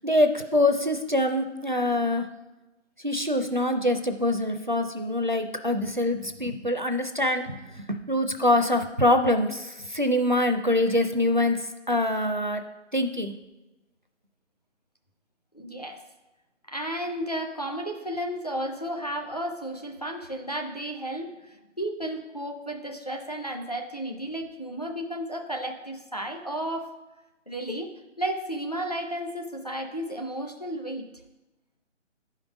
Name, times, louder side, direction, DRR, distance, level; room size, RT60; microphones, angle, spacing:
voice 1, 0.0-2.3 3.0-12.6 12.9-13.3, left 1 dB, 40° right, 7 dB, 0.4 m, -24 dB
voice 2, 15.5-16.0 16.7-26.9 27.5-27.9 28.2-31.0, right 1 dB, 35° left, 3 dB, 0.5 m, -33 dB
10.5 x 5.2 x 5.0 m, 1.1 s
figure-of-eight pair, 175°, 37 cm